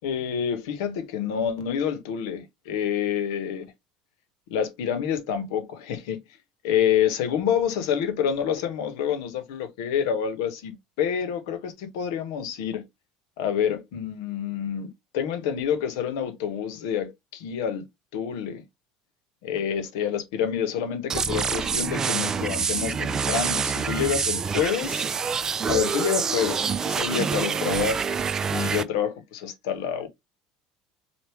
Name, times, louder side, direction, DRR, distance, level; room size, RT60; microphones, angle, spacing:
voice 1, 0.0-3.6 4.5-6.2 6.6-12.8 13.4-17.8 18.1-18.6 19.4-25.0 25.7-28.2 28.5-30.1, left 8 dB, 85° left, 0.9 m, -27 dB
sound 1, 21.1-28.8, right 6 dB, 25° right, 0.3 m, -26 dB
3.4 x 2.4 x 4.3 m
supercardioid pair, 110°, 2 cm